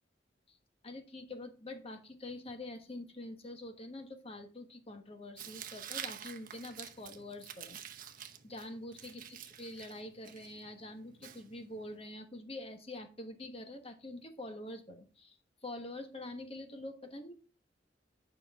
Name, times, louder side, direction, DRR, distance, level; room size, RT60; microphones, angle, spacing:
voice 1, 0.8-7.8 8.4-17.3, left 1 dB, 35° left, 6 dB, 1.2 m, -46 dB
Tearing, 5.4-12.0, right 9 dB, 50° right, 0.8 m, -48 dB
9.7 x 5.4 x 3.6 m, 0.35 s
head